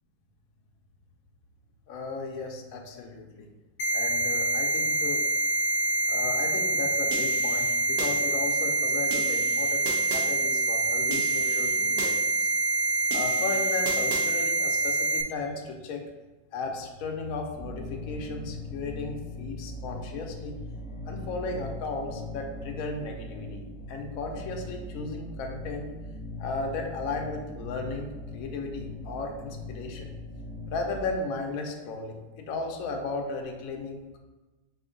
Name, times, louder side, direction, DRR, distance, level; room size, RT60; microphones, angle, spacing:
voice 1, 1.9-3.5 3.9-5.2 6.1-12.5 13.1-16.1 16.5-20.5 21.1-25.9 26.4-28.1 28.3-30.1 30.7-34.2, left 3 dB, 65° left, 2 dB, 0.8 m, -35 dB
sound 1, 3.8-15.2, right 2 dB, 90° left, 1.3 m, -26 dB
sound 2, 7.1-8.1 9.1-10.3 11.1-12.1 13.1-14.3, right 4 dB, 70° right, 1.3 m, -37 dB
sound 3, 17.5-31.1, left 2 dB, 25° left, 0.7 m, -40 dB
5.2 x 2.5 x 3.7 m, 1.1 s
omnidirectional pair, 1.9 m